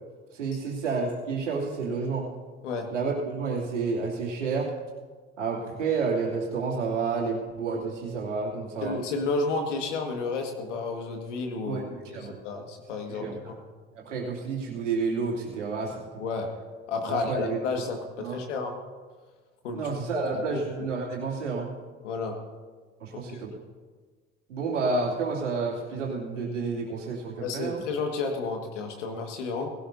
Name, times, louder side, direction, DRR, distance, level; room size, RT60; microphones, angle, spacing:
voice 1, 0.4-2.3 2.9-4.7 5.4-9.0 11.6-12.4 13.1-13.4 14.0-16.0 17.1-17.6 18.2-18.4 19.7-21.7 23.0-23.5 24.5-27.8, right 4 dB, 85° right, -3 dB, 2.8 m, -30 dB
voice 2, 2.6-2.9 8.8-13.6 16.2-16.5 16.9-18.8 19.6-20.9 22.0-22.4 23.3-23.4 27.4-29.7, left 3 dB, 80° left, 4 dB, 1.9 m, -32 dB
19.0 x 17.0 x 2.8 m, 1.5 s
hypercardioid pair, 60°, 36 cm